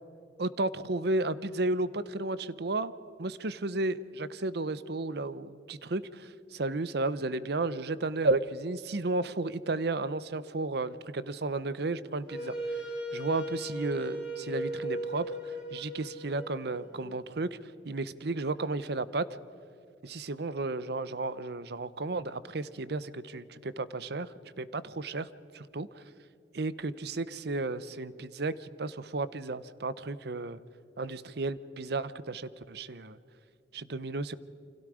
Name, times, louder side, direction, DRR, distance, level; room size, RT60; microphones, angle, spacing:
voice 1, 0.4-2.9 3.2-12.5 13.1-17.5 17.8-19.2 20.0-24.3 24.6-25.3 25.5-26.0 26.5-30.6 31.0-33.2 33.7-34.4, right 2 dB, 65° right, 16 dB, 0.8 m, -33 dB
Wind instrument woodwind instrument, 12.3-17.2, right 1 dB, 5° right, 6.5 m, -37 dB
29.0 x 25.5 x 5.0 m, 2.5 s
head